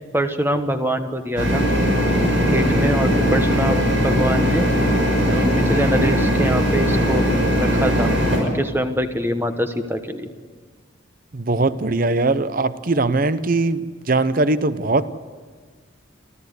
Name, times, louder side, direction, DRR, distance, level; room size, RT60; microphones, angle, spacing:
voice 1, 0.1-1.6 2.4-3.8 4.0-4.7 5.3-7.2 7.6-8.1 8.4-10.3, equal, 10° right, 8 dB, 1.1 m, -24 dB
sound 1, 1.4-8.4, equal, 75° right, 6.5 m, -19 dB
voice 2, 11.3-15.1, right 3 dB, 45° right, 14 dB, 0.7 m, -20 dB
27.5 x 14.0 x 8.0 m, 1.5 s
head